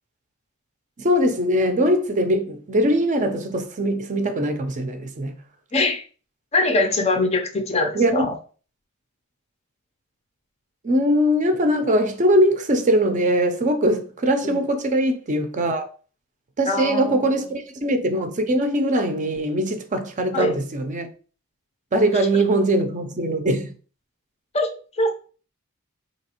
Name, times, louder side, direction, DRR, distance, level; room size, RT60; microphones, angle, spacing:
voice 1, 1.0-5.3 7.9-8.3 10.8-15.9 16.6-21.1 21.9-23.7, right 1 dB, 35° right, 0.5 m, -21 dB
voice 2, 5.7-6.0 6.5-8.3 14.4-14.6 16.7-17.2 20.3-20.5 24.5-24.7 25.0-25.1, left 2 dB, 30° left, 0.5 m, -22 dB
4.1 x 2.9 x 2.9 m
head